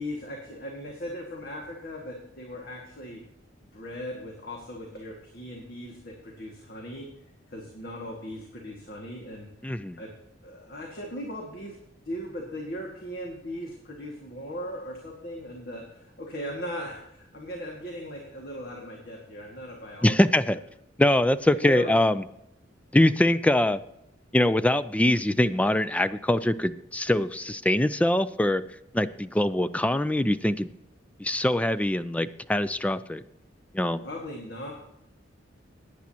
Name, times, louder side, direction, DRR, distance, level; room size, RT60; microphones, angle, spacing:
voice 1, 0.0-3.2 3.7-7.1 7.5-9.5 10.0-10.1 10.4-11.8 12.0-20.2 21.5-22.0 34.0-34.7, equal, 50° left, 0 dB, 1.9 m, -38 dB
voice 2, 9.6-10.0 20.0-20.6 21.0-22.2 22.9-23.8 24.3-28.6 28.9-30.7 31.2-33.2 33.7-34.0, left 1 dB, 5° left, 13 dB, 0.4 m, -23 dB
16.5 x 9.7 x 2.9 m, 0.82 s
head